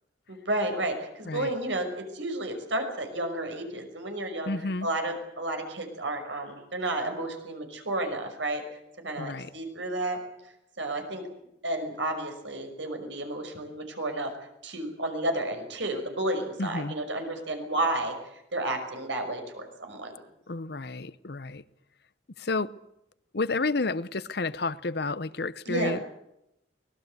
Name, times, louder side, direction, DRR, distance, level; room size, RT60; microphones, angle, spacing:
voice 1, 0.3-4.5 4.8-8.6 9.0-10.2 10.8-11.3 11.6-14.3 14.6-18.2 18.5-20.1 25.7-26.0, right 1 dB, 75° right, 5 dB, 5.9 m, -31 dB
voice 2, 4.5-4.9 9.2-9.5 16.6-17.0 20.5-21.6 22.4-22.7 23.3-26.0, left 3 dB, 55° left, 16 dB, 0.8 m, -30 dB
24.0 x 19.5 x 8.0 m, 0.82 s
head